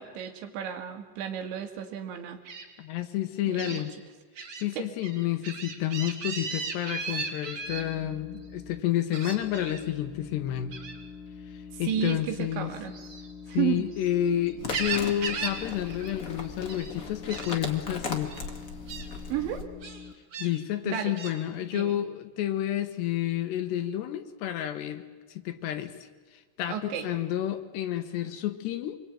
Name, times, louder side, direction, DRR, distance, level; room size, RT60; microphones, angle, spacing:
voice 1, 0.0-2.4 3.5-3.9 4.8-4.9 11.7-13.0 13.5-13.8 19.3-19.6 20.9-21.2 21.7-22.0 26.7-27.1, right 9 dB, 75° right, 6 dB, 4.2 m, -32 dB
Gull seagull, 2.5-2.6 3.6-3.8 4.4-4.6 5.0-7.8 9.1-9.8 10.7-11.0 12.8-14.1 14.5-15.6 15.9-16.1 16.4-16.9 17.3-17.6 18.3-18.4 18.9-19.1 19.8-20.5 21.2-21.4, right 4 dB, 40° right, 4.1 m, -36 dB
voice 2, 2.8-3.9 4.6-10.8 11.5-12.7 13.5-18.3 20.4-25.0 25.3-25.9 26.6-29.0, left 12 dB, 75° left, 9 dB, 3.2 m, -30 dB
sound 1, 7.6-8.8 9.3-20.1, left 5 dB, 25° left, 1.7 m, -45 dB
sound 2, 14.6-19.6, left 4 dB, 45° left, 1.1 m, -38 dB
26.5 x 23.0 x 9.2 m, 1.4 s
omnidirectional pair, 5.2 m